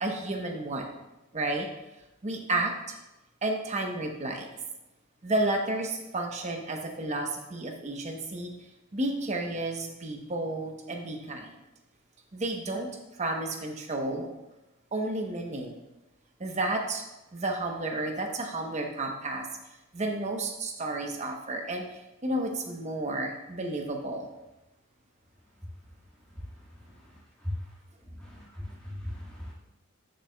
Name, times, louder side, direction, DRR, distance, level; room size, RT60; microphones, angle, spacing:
voice 1, 0.0-0.9 1.3-1.7 2.2-3.0 3.4-4.5 5.2-8.5 8.9-11.6 12.3-14.3 14.9-15.8 16.4-17.0 17.3-19.5 19.9-24.3, right 2 dB, 35° right, 3 dB, 0.9 m, -32 dB
voice 2, 28.2-29.5, left 1 dB, 5° left, -8 dB, 1.8 m, -37 dB
10.5 x 6.5 x 2.2 m, 0.98 s
head